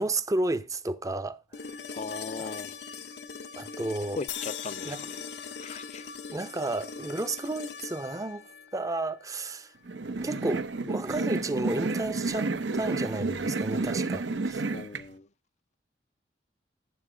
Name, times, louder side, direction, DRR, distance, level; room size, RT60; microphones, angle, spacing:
voice 1, 0.0-1.8 2.4-2.5 3.6-4.2 4.8-5.0 6.3-9.7 10.1-14.6, right 2 dB, 20° right, 0.6 m, -32 dB
sound 1, 1.5-9.6 11.7-11.8, left 5 dB, 65° left, 0.8 m, -42 dB
voice 2, 1.9-2.7 4.2-5.2 5.6-6.1 14.7-15.3, left 4 dB, 40° left, 0.5 m, -39 dB
sound 2, 4.3-7.5, left 10 dB, 90° left, 1.1 m, -42 dB
sound 3, 9.9-15.0, right 3 dB, 80° right, 0.8 m, -30 dB
11.5 x 7.7 x 5.0 m
head